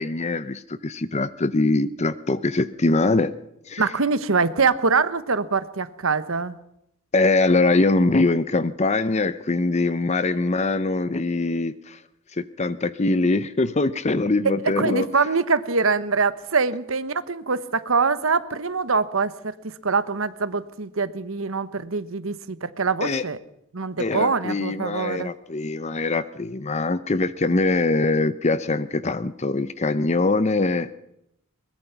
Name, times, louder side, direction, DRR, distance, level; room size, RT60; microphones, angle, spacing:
voice 1, 0.0-3.3 3.7-3.8 7.1-12.0 12.3-15.1 23.0-23.2 24.0-30.9, left 2 dB, 30° left, 15 dB, 0.7 m, -23 dB
voice 2, 3.8-6.6 14.8-23.4 23.7-25.3, right 4 dB, 70° right, 13 dB, 1.1 m, -24 dB
22.0 x 20.0 x 5.9 m, 0.81 s
head